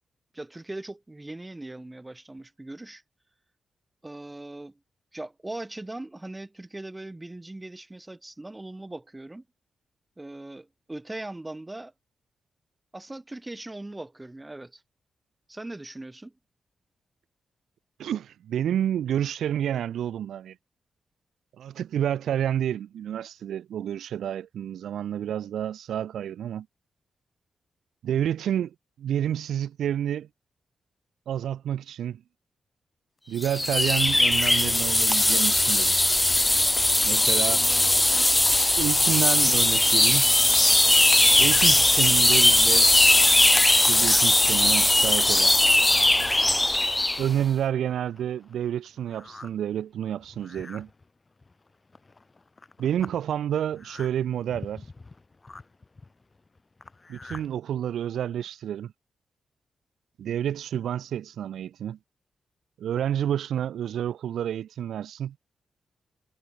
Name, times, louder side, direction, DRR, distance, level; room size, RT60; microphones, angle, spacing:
voice 1, 0.3-3.0 4.0-4.8 5.1-9.4 10.2-11.9 12.9-14.8 15.5-16.3, right 2 dB, 20° right, 1.5 m, -40 dB
voice 2, 18.0-20.6 21.6-26.7 28.0-30.3 31.3-32.2 33.3-36.0 37.0-37.7 38.8-40.2 41.4-42.9 43.6-45.6 47.2-50.9 52.8-54.9 57.1-58.9 60.2-62.0 62.8-65.3, right 10 dB, 80° right, 0.4 m, -29 dB
sound 1, 33.4-47.3, left 1 dB, 20° left, 0.3 m, -20 dB
sound 2, 43.8-44.3 44.8-44.9 45.5-45.6 45.9-46.2 46.8-46.9 47.3-57.5, left 3 dB, 35° left, 1.2 m, -47 dB
supercardioid pair, 45°, 0 cm